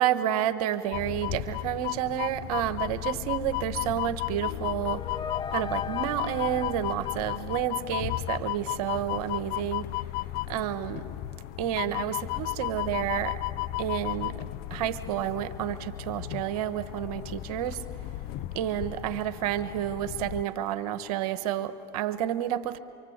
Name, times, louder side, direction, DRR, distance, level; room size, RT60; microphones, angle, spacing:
voice 1, 0.0-5.0 5.5-9.9 10.5-11.0 11.6-13.4 13.8-14.4 14.7-17.8 18.5-22.8, right 11 dB, 75° right, 10 dB, 1.3 m, -30 dB
sound 1, 0.9-20.4, left 16 dB, 55° left, 0.7 m, -34 dB
sound 2, 4.4-8.3, left 6 dB, 25° left, 1.0 m, -39 dB
27.5 x 25.0 x 8.1 m, 2.5 s
supercardioid pair, 100°, 19 cm